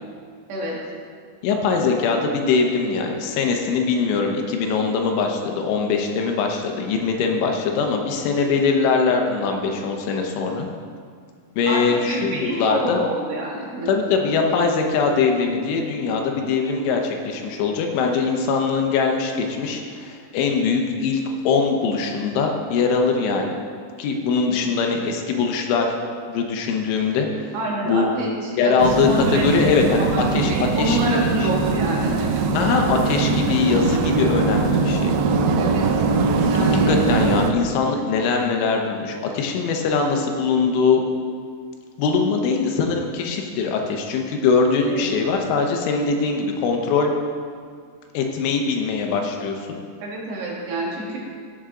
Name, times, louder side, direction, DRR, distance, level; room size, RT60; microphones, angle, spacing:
voice 1, 1.4-10.7 11.6-13.0 13.9-23.5 24.0-25.9 26.3-27.3 27.9-28.2 28.6-31.5 32.5-35.1 36.6-41.0 42.0-47.1 48.1-49.8, left 5 dB, 85° left, 2 dB, 3.4 m, -22 dB
voice 2, 11.6-14.2 24.4-24.6 27.5-32.3 32.6-32.8 33.2-33.6 35.6-35.9 36.5-36.9 44.9-45.0 50.0-51.2, right 1 dB, 65° right, -4 dB, 3.7 m, -28 dB
sound 1, 28.8-37.5, right 4 dB, 85° right, 3.1 m, -21 dB
16.0 x 7.1 x 3.8 m, 2.1 s
omnidirectional pair, 5.3 m